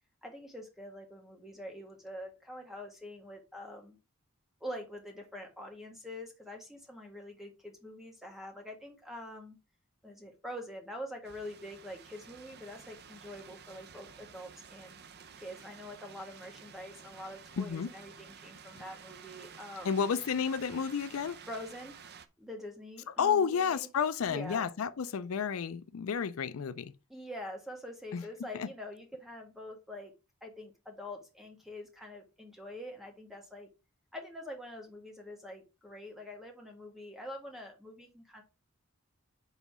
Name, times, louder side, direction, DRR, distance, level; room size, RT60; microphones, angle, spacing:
voice 1, 0.2-4.0 4.6-9.6 10.0-15.0 15.4-19.9 21.5-22.0 22.4-23.9 24.3-24.7 27.1-30.1 30.4-33.7 34.1-38.4, left 1 dB, ahead, 1.5 m, -45 dB
sound 1, 11.2-22.3, right 6 dB, 50° right, 0.6 m, -52 dB
voice 2, 17.6-17.9 19.8-21.4 23.2-26.9 28.1-28.2 28.6-28.7, left 7 dB, 75° left, 0.4 m, -31 dB
5.5 x 4.0 x 5.9 m
head